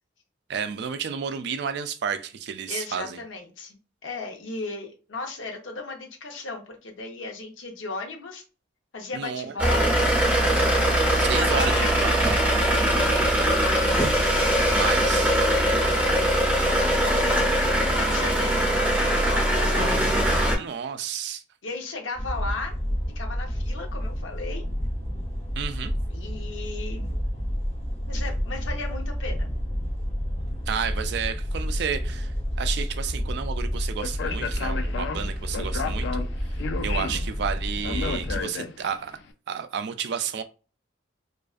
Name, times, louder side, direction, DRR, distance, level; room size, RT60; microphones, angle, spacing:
voice 1, 0.5-3.2 9.1-9.5 11.2-12.3 14.7-15.3 20.6-21.4 25.6-25.9 30.7-36.1 36.8-39.2 39.5-40.4, right 7 dB, 60° right, 0.3 m, -31 dB
voice 2, 2.7-8.4 8.9-10.2 11.1-11.9 13.5-15.6 15.9-16.3 16.8-17.4 17.8-20.1 21.6-22.8 23.2-24.6 26.1-27.1 28.1-29.5, left 3 dB, 85° left, 0.8 m, -36 dB
sound 1, 9.6-20.6, right 1 dB, 10° right, 0.6 m, -21 dB
sound 2, 22.1-38.4, equal, 35° left, 0.7 m, -30 dB
Speech, 34.0-39.1, left 5 dB, 65° left, 0.3 m, -33 dB
2.5 x 2.4 x 2.4 m
head